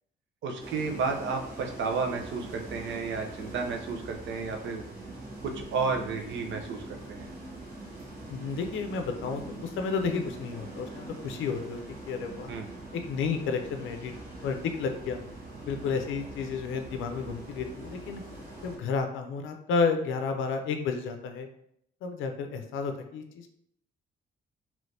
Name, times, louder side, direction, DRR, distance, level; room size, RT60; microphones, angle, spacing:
voice 1, 0.4-4.8 5.4-7.3 12.5-12.7, right 4 dB, 70° right, 3 dB, 0.6 m, -32 dB
sound 1, 0.6-18.8, right 2 dB, 45° right, 1.5 m, -43 dB
voice 2, 8.3-12.5 12.9-14.1 14.4-15.2 15.7-18.2 18.6-21.5 22.0-23.5, left 5 dB, 80° left, 6 dB, 0.5 m, -31 dB
3.2 x 3.0 x 2.6 m, 0.72 s
cardioid pair, 90°, 20 cm